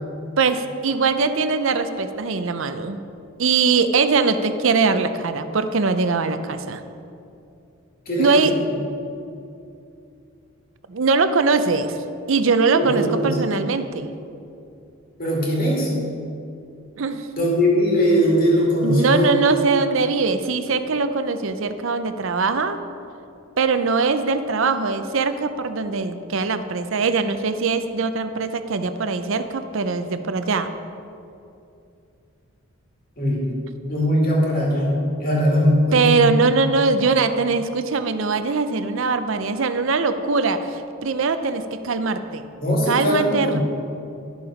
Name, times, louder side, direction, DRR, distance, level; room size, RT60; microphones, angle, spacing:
voice 1, 0.4-3.0 3.4-6.8 8.2-8.5 10.9-12.0 12.3-14.1 17.0-17.3 18.8-22.8 23.6-30.7 35.9-42.5 42.9-43.6, right 4 dB, 60° right, 10 dB, 0.6 m, -21 dB
voice 2, 8.1-8.6 12.7-13.3 15.2-15.9 17.4-19.4 33.2-33.4 33.9-36.5 42.6-43.6, equal, 40° left, -3 dB, 2.4 m, -20 dB
11.5 x 7.0 x 5.0 m, 2.6 s
head